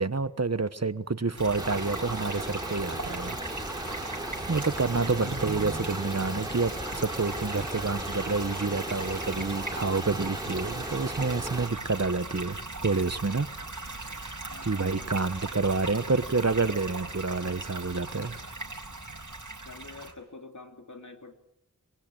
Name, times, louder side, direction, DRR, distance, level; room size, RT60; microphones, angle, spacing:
voice 1, 0.0-3.4 3.9-13.5 14.0-14.4 14.6-18.4, right 3 dB, 55° right, 13 dB, 1.2 m, -29 dB
sound 1, 1.4-20.1, right 2 dB, 70° right, 6.0 m, -38 dB
sound 2, 1.6-11.7, right 1 dB, 10° right, 4.3 m, -37 dB
sound 3, 4.5-11.4, equal, 25° left, 4.5 m, -53 dB
voice 2, 14.5-15.3 19.6-21.3, left 3 dB, 65° left, 4 dB, 3.0 m, -47 dB
23.5 x 22.5 x 9.0 m, 0.81 s
wide cardioid pair, 50°, 32 cm